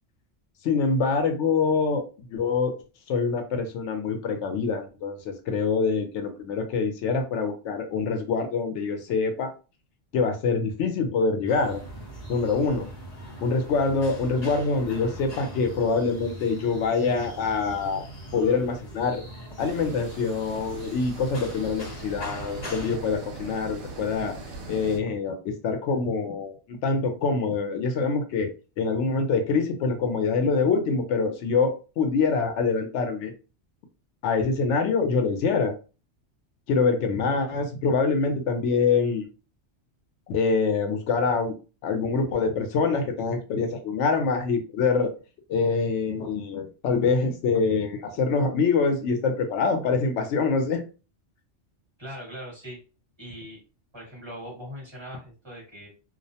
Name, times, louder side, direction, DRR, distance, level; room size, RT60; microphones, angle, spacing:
voice 1, 0.6-2.0 2.3-2.7 3.1-9.5 10.1-11.8 12.3-12.9 13.4-18.1 18.3-19.2 19.6-24.4 24.7-28.5 28.8-33.3 34.2-35.8 36.7-39.3 40.3-41.5 41.8-45.1 45.5-50.8, left 4 dB, 80° left, 6 dB, 0.9 m, -25 dB
sound 1, 11.5-23.0, equal, 40° left, 0.8 m, -41 dB
sound 2, 19.6-25.0, right 2 dB, 70° right, 0.9 m, -40 dB
voice 2, 52.0-52.8 53.2-53.6 53.9-55.9, equal, 25° right, -3 dB, 1.2 m, -40 dB
2.4 x 2.0 x 2.7 m, 0.33 s
omnidirectional pair, 1.2 m